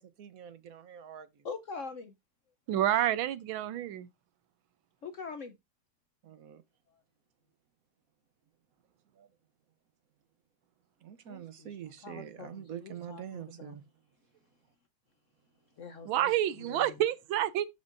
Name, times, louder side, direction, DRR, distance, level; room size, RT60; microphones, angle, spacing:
voice 1, 0.0-1.4 2.7-2.8 6.2-6.6 9.1-9.3 11.0-13.8, right 9 dB, 60° right, 0.9 m, -45 dB
voice 2, 1.4-2.1 5.0-5.6 11.3-11.8 12.0-13.7 15.8-17.0, left 5 dB, 65° left, 0.7 m, -44 dB
voice 3, 2.7-4.1 16.1-17.7, right 12 dB, 75° right, 1.4 m, -28 dB
13.0 x 5.4 x 2.6 m
omnidirectional pair, 2.3 m